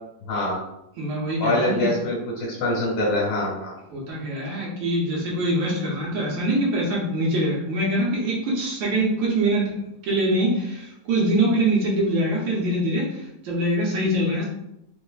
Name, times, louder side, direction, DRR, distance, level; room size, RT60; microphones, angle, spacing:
voice 1, 0.2-0.6 1.4-3.7, left 1 dB, 90° left, -6 dB, 1.9 m, -24 dB
voice 2, 1.0-1.9 3.9-14.5, right 1 dB, 80° right, -4 dB, 1.7 m, -24 dB
4.3 x 2.6 x 2.4 m, 0.80 s
omnidirectional pair, 2.0 m